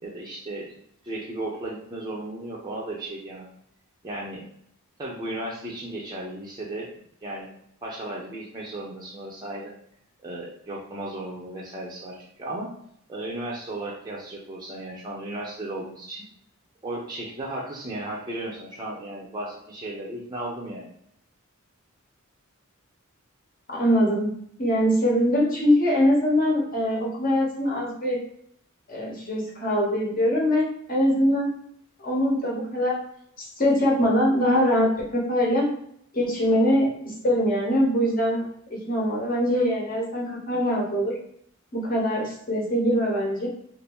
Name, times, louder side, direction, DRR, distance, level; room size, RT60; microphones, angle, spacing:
voice 1, 0.0-0.7 1.0-3.5 4.0-4.4 5.0-6.9 7.2-7.5 7.8-9.7 10.2-12.7 13.1-16.2 16.8-20.9, right 1 dB, 20° right, -4 dB, 0.5 m, -35 dB
voice 2, 23.7-24.3 24.6-28.2 28.9-31.5 32.0-33.0 33.4-35.7 36.1-38.4 38.7-41.2 41.7-43.5, equal, 40° left, -2 dB, 1.0 m, -23 dB
2.6 x 2.5 x 3.5 m, 0.68 s
head